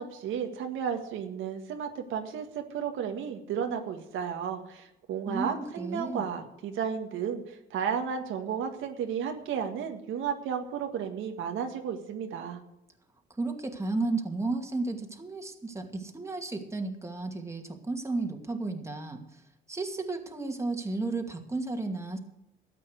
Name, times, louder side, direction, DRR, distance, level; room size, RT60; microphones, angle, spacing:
voice 1, 0.0-12.6, right 7 dB, 85° right, 4 dB, 1.8 m, -33 dB
voice 2, 5.3-6.2 13.4-19.4 19.7-22.2, right 3 dB, 15° right, 3 dB, 2.4 m, -33 dB
13.0 x 8.6 x 8.0 m, 0.87 s
cardioid pair, 90°, 20 cm